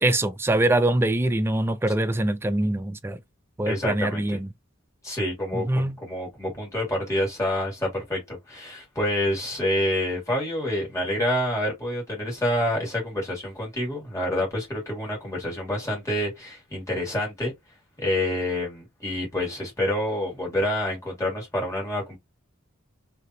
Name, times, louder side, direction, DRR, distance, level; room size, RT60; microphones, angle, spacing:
voice 1, 0.0-3.2 3.6-4.5 5.5-6.0, right 1 dB, 10° right, 0.3 m, -23 dB
voice 2, 3.6-4.4 5.0-17.5 18.0-22.2, left 1 dB, 15° left, 1.8 m, -27 dB
3.3 x 2.7 x 2.6 m
head